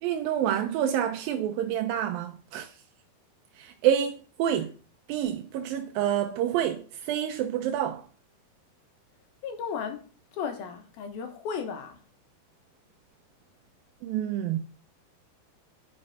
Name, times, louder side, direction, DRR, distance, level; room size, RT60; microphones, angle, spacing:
voice 1, 0.0-2.7 3.6-4.7 5.1-8.1 14.0-14.6, right 10 dB, 80° right, 2.2 m, -28 dB
voice 2, 9.4-12.0, left 6 dB, 70° left, 2.9 m, -35 dB
9.7 x 6.7 x 6.5 m
omnidirectional pair, 4.9 m